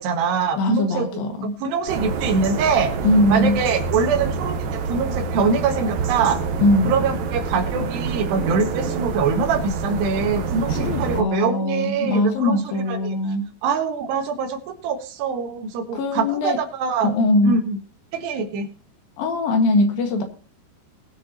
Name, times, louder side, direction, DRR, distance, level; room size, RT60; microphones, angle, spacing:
voice 1, 0.0-1.2 1.6-2.9 3.3-6.4 6.8-13.2 13.6-17.1 17.4-17.8 18.1-18.7, right 5 dB, 85° right, 6 dB, 3.7 m, -23 dB
voice 2, 0.6-1.5 3.0-3.6 6.6-7.0 10.7-13.4 15.9-16.6 17.0-17.6 19.2-20.2, left 2 dB, 65° left, 5 dB, 3.2 m, -21 dB
sound 1, 1.9-11.2, right 5 dB, 65° right, 1.9 m, -27 dB
20.5 x 7.4 x 2.8 m, 0.41 s
omnidirectional pair, 4.7 m